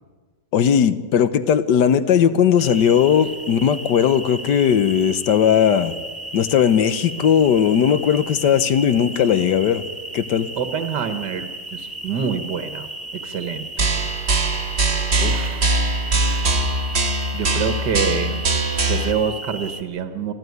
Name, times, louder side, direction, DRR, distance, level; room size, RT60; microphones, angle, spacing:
voice 1, 0.5-5.9 6.3-9.8 10.1-10.5, left 8 dB, 65° left, 13 dB, 1.6 m, -18 dB
sound 1, 2.6-19.8, right 1 dB, 5° left, 1.6 m, -35 dB
voice 2, 10.6-13.9 15.2-15.7 17.3-18.5 18.9-20.3, right 6 dB, 65° right, 8 dB, 1.9 m, -26 dB
sound 2, 13.8-19.1, right 2 dB, 35° right, 1.9 m, -21 dB
26.0 x 15.5 x 9.5 m, 1.5 s
omnidirectional pair, 2.1 m